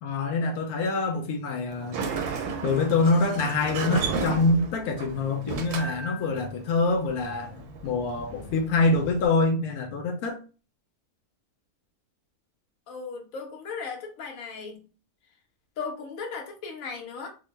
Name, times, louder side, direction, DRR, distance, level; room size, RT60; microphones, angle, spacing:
voice 1, 0.0-2.1 2.6-10.4, left 3 dB, 90° left, 1.1 m, -25 dB
Sliding door, 1.7-9.3, right 5 dB, 90° right, 1.2 m, -34 dB
voice 2, 12.9-14.8 15.8-17.3, left 5 dB, 70° left, 1.2 m, -36 dB
3.7 x 2.1 x 3.2 m
omnidirectional pair, 1.6 m